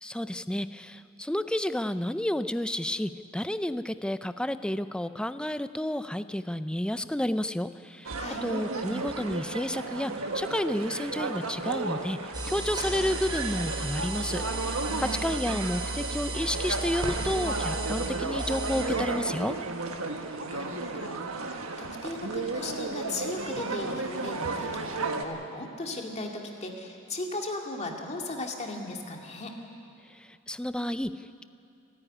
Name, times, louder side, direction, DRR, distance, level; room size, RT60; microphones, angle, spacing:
voice 1, 0.0-19.6 30.1-31.4, left 1 dB, 5° left, 12 dB, 0.5 m, -31 dB
sound 1, 8.0-25.2, right 3 dB, 80° right, 1.5 m, -34 dB
sound 2, 12.3-18.8, right 2 dB, 20° right, 4.2 m, -34 dB
voice 2, 14.8-15.2 20.4-29.5, left 2 dB, 30° left, 1 dB, 2.2 m, -37 dB
29.5 x 9.9 x 9.9 m, 2.6 s
head